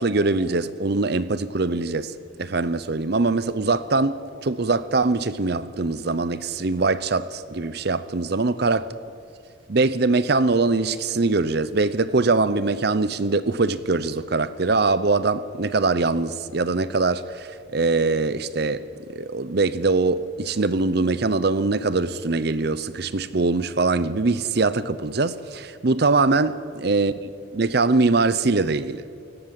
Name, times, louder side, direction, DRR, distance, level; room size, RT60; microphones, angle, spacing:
voice 1, 0.0-8.9 9.7-27.1 27.5-29.0, right 3 dB, 55° right, 0.7 m, -22 dB
29.0 x 17.5 x 7.6 m
head